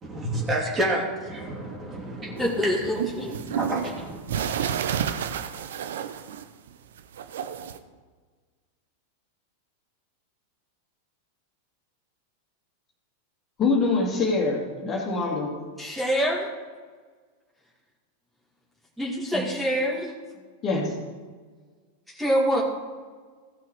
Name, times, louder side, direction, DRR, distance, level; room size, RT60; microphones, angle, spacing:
voice 1, 0.0-2.9 3.4-4.2, right 1 dB, 20° right, -2 dB, 2.9 m, -29 dB
voice 2, 2.4-3.4 15.8-16.5 19.0-20.1 22.1-22.6, equal, 5° right, -6 dB, 2.3 m, -25 dB
sound 1, 2.4-6.7 7.0-7.8, right 8 dB, 60° right, 0.6 m, -30 dB
voice 3, 13.6-15.6 19.3-19.4 20.6-21.0, left 3 dB, 30° left, -1 dB, 2.4 m, -24 dB
16.5 x 5.8 x 4.8 m, 1.5 s
figure-of-eight pair, 90°, 0 cm